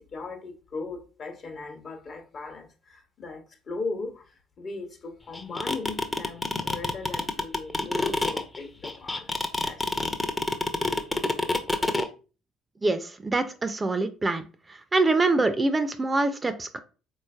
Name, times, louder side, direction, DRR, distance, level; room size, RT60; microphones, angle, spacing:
voice 1, 0.0-9.3 9.6-9.8, left 3 dB, 50° left, 0.8 m, -38 dB
sound 1, 5.3-12.1, left 2 dB, 20° left, 0.5 m, -26 dB
voice 2, 12.8-14.4 14.9-16.8, right 2 dB, 25° right, 0.4 m, -24 dB
4.0 x 3.1 x 2.3 m
hypercardioid pair, 55°, 0 cm